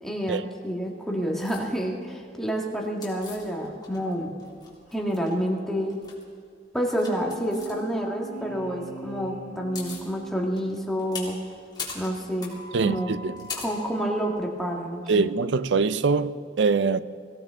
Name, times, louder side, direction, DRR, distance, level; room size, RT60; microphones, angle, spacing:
voice 1, 0.0-4.3 4.9-5.9 6.7-11.4 11.9-12.5 12.8-13.1 13.6-15.3, equal, 5° left, 1.8 m, -29 dB
sound 1, 1.4-1.6 3.0-4.1 4.4-5.3 5.9-6.2 6.9-7.7 9.2-9.3 9.5-10.1 10.5-14.3, left 4 dB, 25° left, 3.5 m, -39 dB
sound 2, 7.0-10.8, right 4 dB, 55° right, 3.0 m, -41 dB
voice 2, 12.7-13.4 15.1-17.0, right 4 dB, 80° right, 0.5 m, -23 dB
24.0 x 16.5 x 3.7 m
head